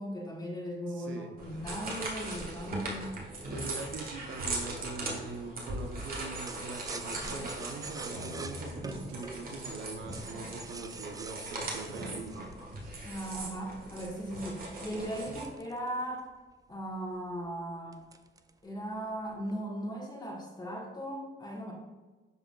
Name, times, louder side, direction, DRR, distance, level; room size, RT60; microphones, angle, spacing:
voice 1, 0.0-3.2 13.0-16.3 16.7-18.0 18.6-21.7, equal, 20° left, -3 dB, 1.5 m, -38 dB
voice 2, 0.9-1.4 3.5-12.5, right 3 dB, 70° right, 5 dB, 1.0 m, -42 dB
sound 1, 1.4-15.4, right 2 dB, 45° right, 1.6 m, -39 dB
sound 2, 6.5-13.4 13.9-16.4 16.7-16.8 17.1-17.5 17.9-18.6 18.9-19.5, right 4 dB, 20° right, 0.4 m, -46 dB
11.0 x 3.8 x 2.4 m, 1.3 s
cardioid pair, 90°, 20 cm